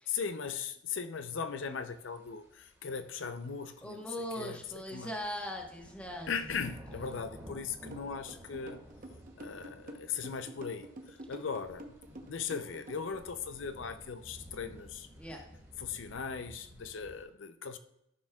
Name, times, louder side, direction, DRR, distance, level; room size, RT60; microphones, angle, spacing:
voice 1, 0.1-4.1 4.4-5.1 6.3-8.8 9.4-11.9 12.3-15.1 15.8-17.8, left 6 dB, 75° left, 0.6 m, -38 dB
sound 1, 1.1-17.2, equal, 15° right, 1.9 m, -54 dB
voice 2, 3.8-6.3 6.6-6.7 15.2-15.4, equal, 5° left, 1.2 m, -40 dB
sound 2, 7.9-13.2, right 1 dB, 45° right, 0.9 m, -47 dB
13.5 x 6.4 x 2.3 m
head